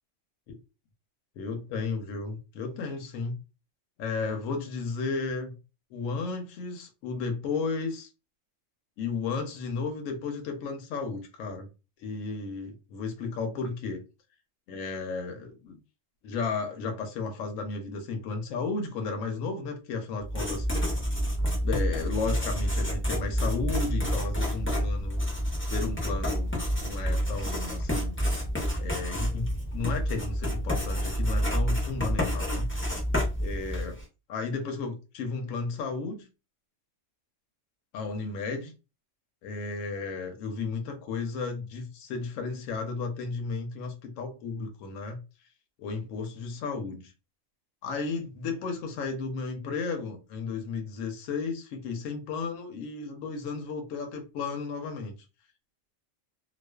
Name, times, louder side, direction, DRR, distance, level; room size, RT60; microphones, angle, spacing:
voice 1, 1.4-3.3 4.0-5.5 5.9-8.1 9.0-11.7 12.0-14.0 14.7-15.8 16.2-20.9 21.6-25.2 25.7-28.2 28.8-32.7 33.4-34.0 34.3-36.3 37.9-38.7 39.4-45.2 45.8-47.1 47.8-55.2, left 4 dB, 80° left, 1.0 m, -34 dB
Writing, 20.2-34.0, equal, 15° left, 0.5 m, -28 dB
2.3 x 2.3 x 2.2 m
omnidirectional pair, 1.3 m